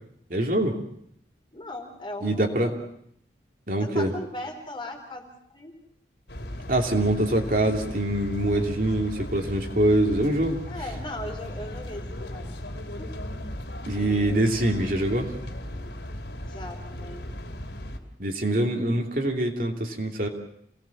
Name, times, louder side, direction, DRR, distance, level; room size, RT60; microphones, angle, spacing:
voice 1, 0.3-0.8 2.2-2.8 3.7-4.1 6.7-10.6 13.9-15.3 18.2-20.3, right 1 dB, 50° right, 2 dB, 2.9 m, -24 dB
voice 2, 1.5-2.8 3.8-5.7 10.7-12.5 13.0-13.1 13.9-14.5 16.4-17.4, left 1 dB, 30° left, 3 dB, 3.8 m, -39 dB
sound 1, 6.3-18.0, left 1 dB, 80° left, 3.0 m, -37 dB
28.0 x 19.0 x 7.3 m, 0.71 s
head